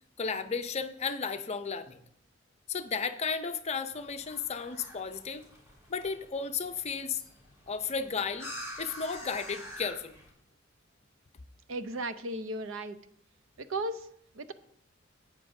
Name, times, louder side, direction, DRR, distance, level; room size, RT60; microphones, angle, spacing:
voice 1, 0.2-2.0 2.7-5.4 5.9-7.2 7.7-8.5 8.8-10.2, left 5 dB, 35° left, 8 dB, 0.6 m, -34 dB
sound 1, 3.9-10.3, left 1 dB, 15° right, 3.0 m, -47 dB
voice 2, 11.7-13.0 13.6-14.1 14.3-14.5, right 1 dB, 80° right, 11 dB, 0.7 m, -35 dB
12.5 x 8.9 x 2.7 m, 0.71 s
head